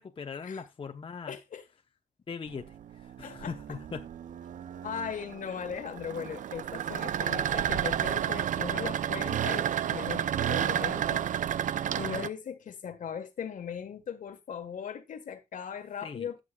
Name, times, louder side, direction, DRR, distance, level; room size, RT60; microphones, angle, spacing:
voice 1, 0.0-1.4 2.3-4.1 16.0-16.3, left 5 dB, 40° left, 0.9 m, -40 dB
voice 2, 1.3-1.6 3.2-3.5 4.8-16.4, left 7 dB, 70° left, 1.5 m, -39 dB
sound 1, 2.5-12.3, right 10 dB, 70° right, 0.5 m, -31 dB
17.5 x 6.7 x 2.4 m
cardioid pair, 85°, 14 cm